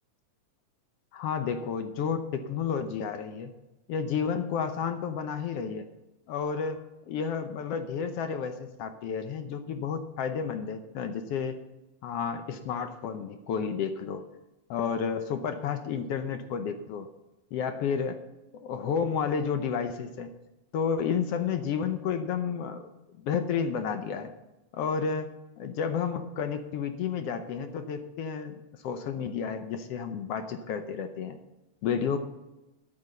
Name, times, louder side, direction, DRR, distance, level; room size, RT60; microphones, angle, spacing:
voice 1, 1.1-3.5 3.9-5.9 6.3-6.8 7.1-11.6 12.0-14.2 14.7-17.1 17.5-18.2 18.5-20.3 20.7-22.9 23.2-24.3 24.7-25.3 25.6-31.4 31.8-32.2, left 6 dB, 70° left, 8 dB, 1.5 m, -31 dB
9.8 x 8.7 x 6.5 m, 0.99 s
omnidirectional pair, 3.4 m